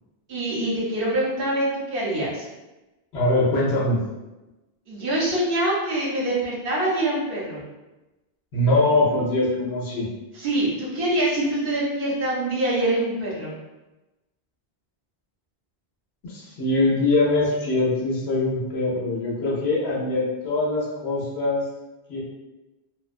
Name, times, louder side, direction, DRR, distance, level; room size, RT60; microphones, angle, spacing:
voice 1, 0.3-2.5 4.9-7.6 10.3-13.5, right 1 dB, 60° right, -6 dB, 0.8 m, -25 dB
voice 2, 3.1-4.0 8.5-10.1 16.2-21.6 22.1-22.2, left 2 dB, 90° left, -5 dB, 1.0 m, -22 dB
2.4 x 2.1 x 2.4 m, 1.0 s
omnidirectional pair, 1.0 m